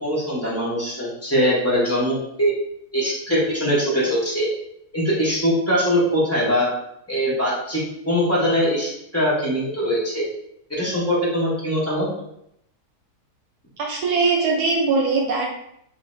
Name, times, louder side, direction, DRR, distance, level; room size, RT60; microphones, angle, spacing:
voice 1, 0.0-2.5 2.9-4.5 4.9-6.7 7.1-10.3 10.7-12.1, equal, 15° left, -8 dB, 0.6 m, -22 dB
voice 2, 13.8-15.5, right 4 dB, 80° right, 0 dB, 1.1 m, -21 dB
2.7 x 2.6 x 3.1 m, 0.76 s
omnidirectional pair, 1.7 m